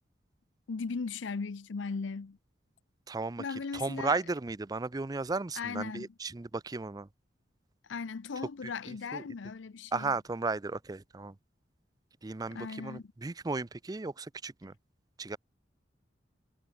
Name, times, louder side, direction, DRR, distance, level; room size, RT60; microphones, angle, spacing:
voice 1, 0.7-2.4 3.4-4.2 5.6-6.1 7.9-10.1 12.5-13.1, left 4 dB, 90° left, 0.6 m, -37 dB
voice 2, 3.1-3.4 3.7-7.1 9.1-9.2 9.9-11.3 12.2-14.7 15.2-15.4, right 3 dB, 20° right, 0.4 m, -35 dB
head